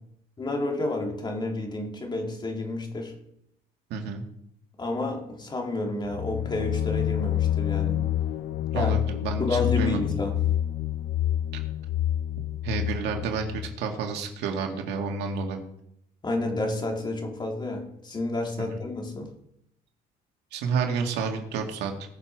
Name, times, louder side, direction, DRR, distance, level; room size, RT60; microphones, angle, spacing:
voice 1, 0.4-3.1 4.8-8.1 8.7-9.0 9.4-10.5 16.2-19.3, left 2 dB, 25° left, 2.9 m, -30 dB
voice 2, 3.9-4.2 8.7-9.5 9.8-10.1 12.6-15.6 18.6-18.7 20.5-21.9, right 5 dB, 85° right, 2.2 m, -30 dB
sound 1, 6.0-13.8, left 11 dB, 65° left, 1.0 m, -28 dB
19.5 x 6.7 x 4.8 m
cardioid pair, 110°, 17 cm